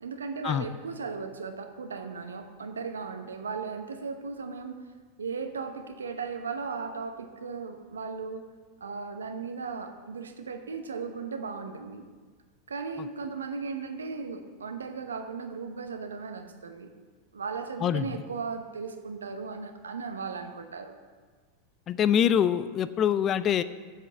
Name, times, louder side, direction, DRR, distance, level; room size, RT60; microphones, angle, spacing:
voice 1, 0.0-4.8 5.2-8.4 8.8-12.0 12.7-16.9 17.3-21.0, right 5 dB, 85° right, 6 dB, 0.9 m, -36 dB
voice 2, 17.8-18.1 21.9-23.6, left 9 dB, 35° left, 14 dB, 0.5 m, -24 dB
7.7 x 7.7 x 7.0 m, 1.5 s
hypercardioid pair, 95°, 0 cm